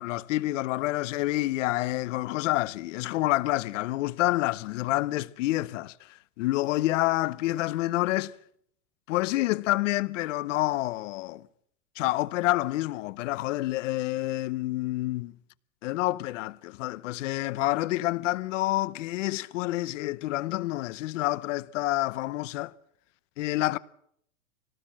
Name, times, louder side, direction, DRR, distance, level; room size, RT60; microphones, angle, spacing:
voice 1, 0.0-8.3 9.1-11.4 12.0-15.3 15.8-22.7 23.4-23.8, left 17 dB, 55° left, 0.9 m, -28 dB
24.0 x 18.5 x 7.4 m
supercardioid pair, 145°, 44 cm